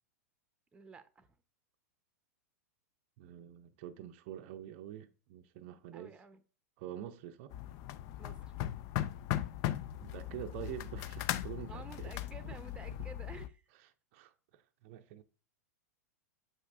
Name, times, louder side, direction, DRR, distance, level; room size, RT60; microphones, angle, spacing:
voice 1, 0.7-1.3 5.9-6.4 8.2-8.5 11.7-13.6, right 4 dB, 10° right, 0.8 m, -51 dB
voice 2, 3.2-6.2 6.8-7.5 10.0-12.1 12.4-12.6 14.1-15.2, right 11 dB, 50° right, 0.5 m, -46 dB
sound 1, 7.5-13.5, left 13 dB, 45° left, 0.4 m, -38 dB
7.7 x 5.3 x 2.5 m
hypercardioid pair, 100°, 9 cm